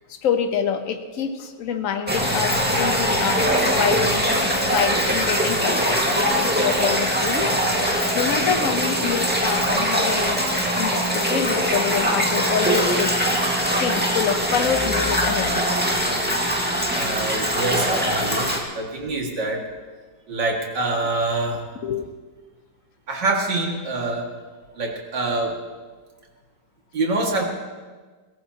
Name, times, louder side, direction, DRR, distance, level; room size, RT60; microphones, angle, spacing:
voice 1, 0.1-10.4 10.8-15.7 21.8-22.1, left 7 dB, 50° left, 7 dB, 1.3 m, -27 dB
sound 1, 2.1-18.6, equal, 5° right, 1.8 m, -22 dB
voice 2, 16.9-19.7 20.3-21.7 23.1-24.3 24.7-25.6 26.9-27.4, right 2 dB, 70° right, -1 dB, 2.8 m, -25 dB
21.5 x 17.0 x 2.9 m, 1.4 s
omnidirectional pair, 1.9 m